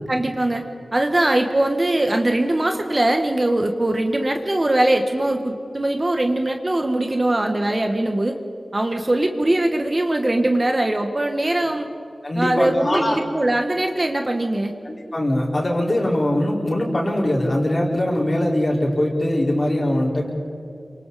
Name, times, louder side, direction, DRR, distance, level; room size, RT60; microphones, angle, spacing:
voice 1, 0.1-0.6 0.9-8.3 8.7-11.9 12.3-14.7, right 1 dB, 30° right, 4 dB, 1.3 m, -21 dB
voice 2, 12.2-13.2 14.8-20.3, left 1 dB, 35° left, -3 dB, 4.7 m, -21 dB
28.0 x 25.5 x 4.2 m, 2.7 s
wide cardioid pair, 95°, 0 cm